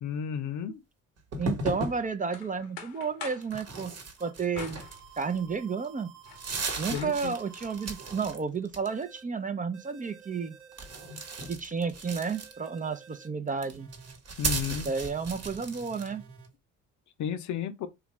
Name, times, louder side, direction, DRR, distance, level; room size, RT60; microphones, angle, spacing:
voice 1, 0.0-0.8 6.9-7.3 14.4-14.9 17.2-17.9, left 8 dB, 60° left, 0.6 m, -33 dB
sound 1, 1.3-2.0 3.4-5.4 5.8-5.9 6.2-8.4 8.6-9.2 10.7-12.8 13.5-16.1, right 3 dB, 45° right, 1.2 m, -36 dB
voice 2, 1.4-3.9 4.2-4.8 5.2-6.1 6.8-10.6 11.5-13.9 14.8-16.2, right 5 dB, 25° right, 0.5 m, -32 dB
sound 2, 1.8-3.5 4.5-5.6 6.0-7.7, left 6 dB, 85° left, 0.8 m, -45 dB
sound 3, 4.2-4.3 4.8-6.6 7.1-8.4 8.9-9.2 9.7-11.5 12.0-13.3 13.8-14.2 14.7-16.5, right 7 dB, 80° right, 1.2 m, -52 dB
3.4 x 2.4 x 2.9 m
supercardioid pair, 60°, 34 cm